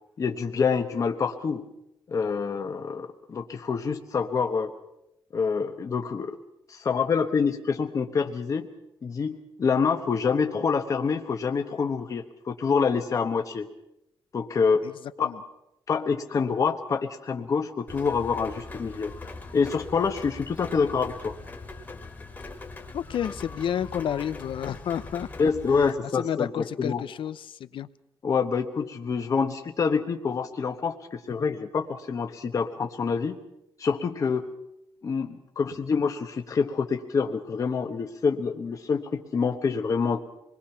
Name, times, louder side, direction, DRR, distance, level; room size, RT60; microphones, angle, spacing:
voice 1, 0.2-1.7 2.1-4.7 5.3-6.4 6.7-8.7 9.0-13.7 14.3-14.9 15.2-15.3 15.9-21.3 25.4-27.0 28.2-33.4 33.8-34.4 35.0-40.2, left 5 dB, 40° left, 4 dB, 1.1 m, -26 dB
Rain, 17.9-25.9, left 3 dB, 20° left, 2.0 m, -41 dB
voice 2, 22.9-25.5 25.8-27.9, left 9 dB, 75° left, 14 dB, 0.8 m, -31 dB
27.0 x 21.0 x 5.8 m, 0.85 s
wide cardioid pair, 175°, 9 cm